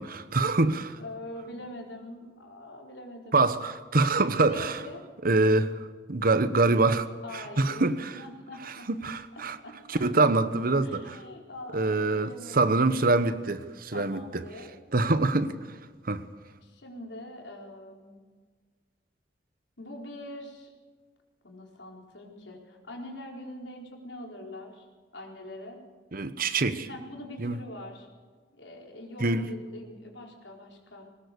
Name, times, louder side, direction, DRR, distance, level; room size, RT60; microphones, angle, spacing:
voice 1, 0.0-1.0 3.3-4.8 5.2-5.7 6.1-7.1 7.3-8.2 8.9-9.6 9.9-11.2 11.7-14.4 14.9-15.5 16.0-16.2 26.1-26.9 27.4-27.6 29.2-29.5, right 3 dB, 55° right, 1.1 m, -25 dB
voice 2, 1.0-3.5 4.5-5.0 7.2-8.9 9.6-10.0 10.8-12.7 13.9-14.7 16.6-18.1 19.8-20.7 21.4-24.8 25.1-25.8 26.9-28.1 28.6-31.1, left 1 dB, 90° left, 4.4 m, -43 dB
21.5 x 19.0 x 6.8 m
head